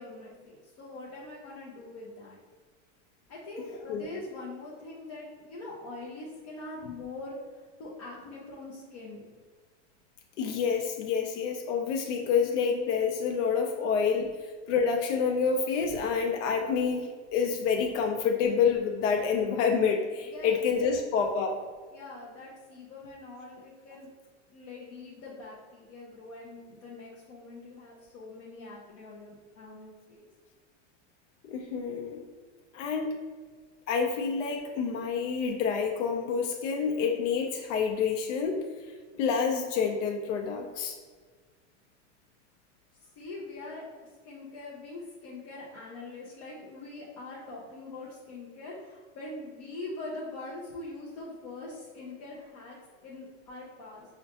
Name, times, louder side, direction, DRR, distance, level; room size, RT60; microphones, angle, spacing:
voice 1, 0.0-2.4 3.3-9.3 20.3-20.6 21.9-24.1 24.5-30.3 43.2-54.1, left 2 dB, 30° left, -6 dB, 0.3 m, -43 dB
voice 2, 10.4-14.3 14.7-21.6 31.4-32.2 32.7-33.2 33.9-38.6 39.1-41.0, left 6 dB, 70° left, 2 dB, 0.6 m, -28 dB
5.6 x 2.2 x 2.8 m, 1.5 s
supercardioid pair, 175°, 37 cm